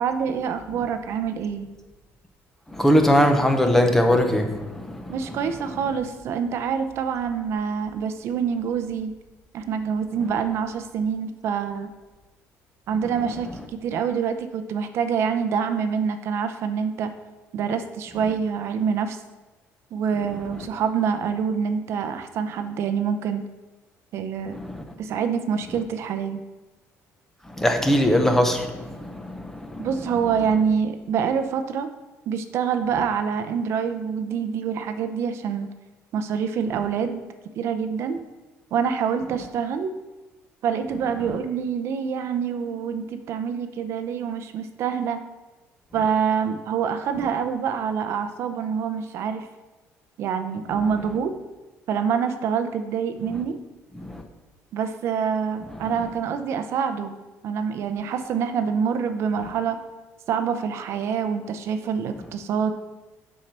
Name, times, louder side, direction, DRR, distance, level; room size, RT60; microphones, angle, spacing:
voice 1, 0.0-1.7 5.1-9.1 9.5-11.9 12.9-13.5 13.8-17.1 17.5-19.2 19.9-23.4 24.1-24.6 25.0-26.4 29.8-31.9 32.3-35.7 36.1-37.2 37.6-38.2 38.7-39.9 40.6-45.2 45.9-49.5 50.2-51.4 51.9-53.6 54.7-57.2 57.4-59.8 60.3-62.7, right 7 dB, 55° right, 8 dB, 0.6 m, -26 dB
voice 2, 2.7-5.4 24.5-24.8 27.5-29.9 54.0-54.2, equal, 5° left, 5 dB, 0.8 m, -21 dB
7.4 x 5.6 x 6.7 m, 1.1 s
cardioid pair, 170°, 6 cm